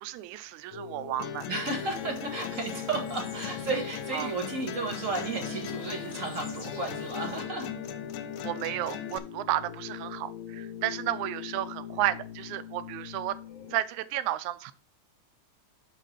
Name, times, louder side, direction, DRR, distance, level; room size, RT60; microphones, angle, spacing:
voice 1, 0.0-1.5 4.1-4.3 8.4-13.4 13.7-14.7, right 14 dB, 85° right, 14 dB, 2.0 m, -32 dB
sound 1, 0.7-13.8, left 8 dB, 70° left, 2.2 m, -41 dB
sound 2, 1.2-9.2, left 10 dB, 90° left, 2.2 m, -40 dB
voice 2, 1.5-7.7, right 3 dB, 40° right, 1 dB, 1.1 m, -33 dB
outdoor winter ambience birds light wind, 1.7-7.4, left 3 dB, 45° left, 2.4 m, -47 dB
6.0 x 4.9 x 6.3 m, 0.37 s
omnidirectional pair, 3.4 m